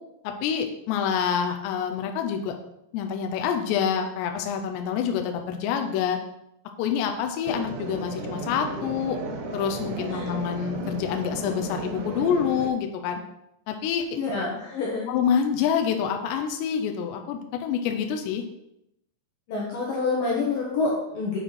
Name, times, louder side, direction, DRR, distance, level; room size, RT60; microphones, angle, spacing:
voice 1, 0.2-2.6 2.9-6.2 6.8-9.2 9.5-13.2 13.7-14.1 15.1-18.4, left 7 dB, 85° left, 4 dB, 2.7 m, -27 dB
sound 1, 7.4-12.7, right 2 dB, 85° right, 3.1 m, -34 dB
voice 2, 14.1-15.2 19.5-21.4, left 3 dB, 70° left, -4 dB, 2.3 m, -27 dB
9.0 x 5.8 x 3.2 m, 0.82 s
omnidirectional pair, 5.1 m